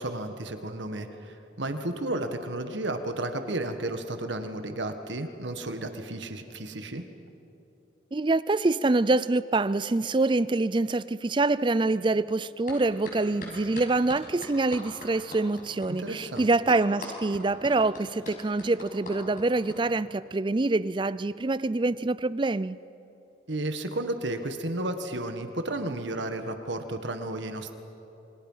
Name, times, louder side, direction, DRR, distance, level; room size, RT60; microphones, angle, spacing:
voice 1, 0.0-7.0 16.0-16.4 23.5-27.7, right 1 dB, 80° right, 1.7 m, -33 dB
voice 2, 8.1-22.8, right 2 dB, 25° right, 0.4 m, -25 dB
sound 1, 12.7-12.8 13.0-19.8, left 1 dB, 45° left, 6.6 m, -41 dB
28.0 x 24.0 x 5.7 m
head